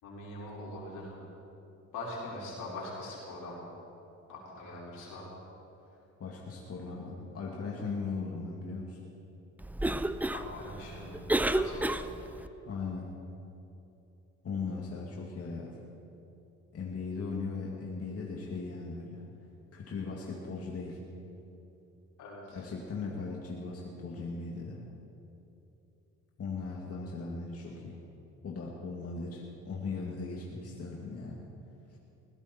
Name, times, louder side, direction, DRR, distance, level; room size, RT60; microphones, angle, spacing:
voice 1, 0.0-1.2 1.9-3.5 4.3-5.4 10.3-11.3 11.5-12.1 22.2-22.7, left 1 dB, 85° left, -5 dB, 5.1 m, -42 dB
voice 2, 6.2-9.0 12.7-13.1 14.4-15.8 16.7-19.3 19.7-21.0 22.5-24.8 26.4-28.0 28.4-31.5, left 4 dB, 50° left, -2 dB, 2.3 m, -38 dB
Cough, 9.6-12.5, right 1 dB, 5° right, 0.5 m, -31 dB
20.5 x 16.0 x 4.4 m, 2.9 s
cardioid pair, 90°, 30 cm